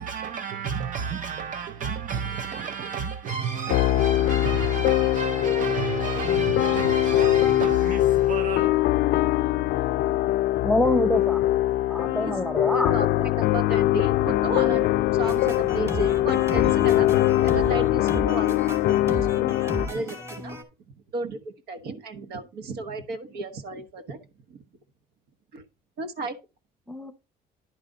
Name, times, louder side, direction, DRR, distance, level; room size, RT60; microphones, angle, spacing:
voice 1, 0.0-8.7, right 6 dB, 50° right, 0.6 m, -31 dB
sound 1, 3.7-19.9, left 15 dB, 70° left, 0.4 m, -22 dB
voice 2, 10.6-11.4 11.9-12.9 13.2-13.3 26.9-27.1, left 1 dB, 5° left, 0.9 m, -25 dB
voice 3, 12.0-20.6 21.1-24.2 25.5-25.6 26.0-26.4, right 3 dB, 70° right, 1.2 m, -34 dB
sound 2, 15.2-20.6, equal, 15° right, 2.1 m, -35 dB
10.5 x 4.9 x 3.8 m
cardioid pair, 110°, 17 cm